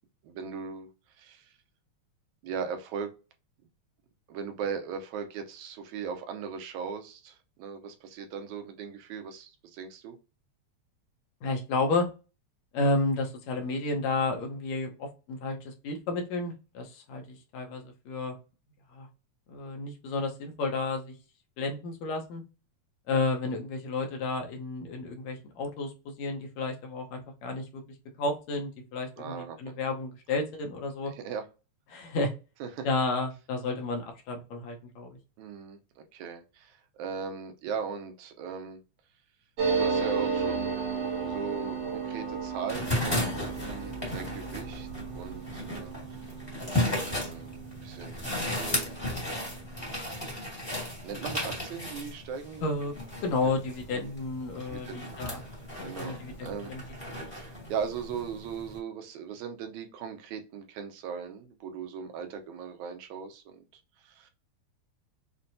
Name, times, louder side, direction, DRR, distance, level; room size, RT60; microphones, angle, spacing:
voice 1, 0.2-0.9 1.2-1.5 2.4-3.1 4.3-10.2 29.2-29.7 31.1-31.5 32.6-32.9 35.4-38.8 39.8-40.8 41.2-46.2 46.7-48.9 51.0-52.7 53.4-53.5 53.9-54.1 54.7-55.0 55.8-56.1 56.4-56.7 57.3-63.6 64.0-64.3, right 6 dB, 85° right, 2.1 m, -38 dB
voice 2, 11.4-12.1 12.7-18.4 18.9-19.1 19.5-21.1 21.6-22.4 23.1-27.8 28.2-31.1 31.9-32.3 32.8-35.2 52.6-52.9 53.2-55.4 55.8-56.8, left 3 dB, 75° left, 2.1 m, -31 dB
sound 1, 39.6-48.7 49.0-49.1 49.3-49.9, right 5 dB, 65° right, 1.2 m, -33 dB
sound 2, 42.7-58.8, left 1 dB, 15° left, 1.0 m, -35 dB
6.1 x 2.2 x 2.6 m
omnidirectional pair, 3.3 m